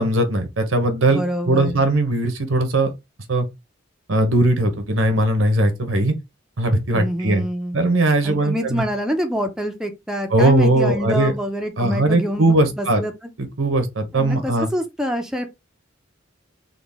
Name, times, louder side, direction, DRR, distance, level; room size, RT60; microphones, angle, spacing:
voice 1, 0.0-2.9 3.3-3.5 4.1-6.1 6.6-7.5 7.7-8.8 10.3-11.3 11.8-13.0 13.6-14.7, right 1 dB, 80° right, 1.0 m, -19 dB
voice 2, 1.1-1.8 6.9-7.8 8.2-13.1 14.1-15.5, equal, 5° right, 0.6 m, -26 dB
3.9 x 2.4 x 3.5 m
head